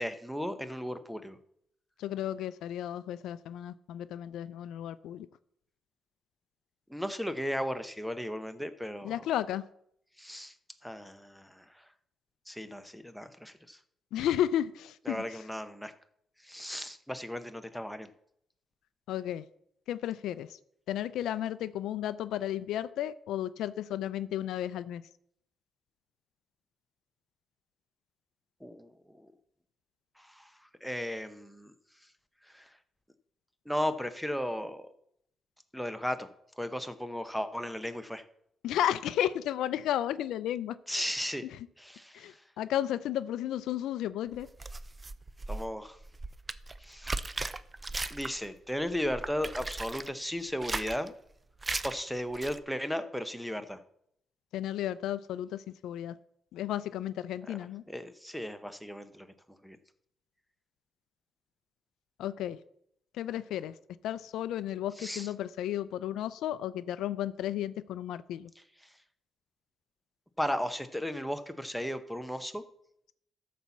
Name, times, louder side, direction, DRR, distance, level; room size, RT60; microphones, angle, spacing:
voice 1, 0.0-1.4 6.9-9.2 10.2-10.5 10.8-11.9 12.5-13.8 15.1-15.9 16.4-18.1 28.6-29.3 30.2-30.5 30.8-31.7 32.5-32.7 33.7-34.9 35.7-36.3 36.6-38.2 40.9-41.4 41.8-42.4 45.5-46.0 46.8-47.2 48.1-51.1 51.8-53.8 57.5-57.6 57.9-59.3 59.6-59.8 65.0-65.3 70.4-72.6, equal, ahead, 9 dB, 0.9 m, -35 dB
voice 2, 2.0-5.3 9.0-9.6 14.1-15.4 19.1-19.5 19.9-20.6 20.9-25.0 38.6-41.1 41.4-41.5 42.1-44.5 54.5-56.1 56.5-57.8 62.2-62.6 63.1-63.7 64.0-68.5, left 11 dB, 85° left, 15 dB, 0.4 m, -33 dB
sound 1, 44.3-48.5 48.8-50.1 50.5-51.1 51.6-52.0 52.3-52.6, right 2 dB, 20° right, 0.5 m, -37 dB
12.5 x 4.2 x 7.1 m, 0.72 s
cardioid pair, 90°, 0 cm